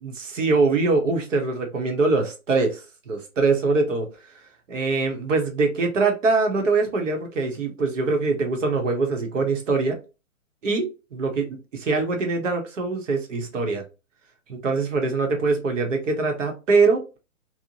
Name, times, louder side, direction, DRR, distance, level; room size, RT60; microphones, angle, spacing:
voice 1, 0.0-4.1 4.7-10.0 10.6-11.4 11.8-13.8 14.5-17.2, right 3 dB, 60° right, 0.9 m, -23 dB
2.7 x 2.1 x 2.8 m
hypercardioid pair, 165°, 43 cm